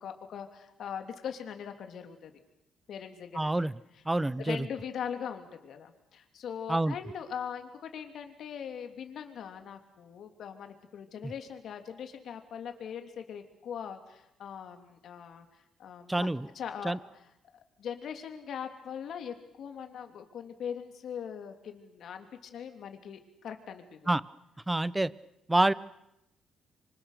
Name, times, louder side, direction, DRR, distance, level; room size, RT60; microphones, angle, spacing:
voice 1, 0.0-2.3 2.9-3.5 4.4-15.5 15.8-16.3 16.5-17.0 17.8-24.1, left 8 dB, 70° left, 6 dB, 3.2 m, -41 dB
voice 2, 3.3-3.8 4.0-4.7 6.7-6.9 11.2-11.3 16.1-16.5 16.8-17.0 24.1-24.2 24.7-25.1 25.5-25.7, right 2 dB, 15° right, 18 dB, 0.9 m, -27 dB
26.0 x 25.5 x 6.8 m, 0.84 s
cardioid pair, 90°, 0 cm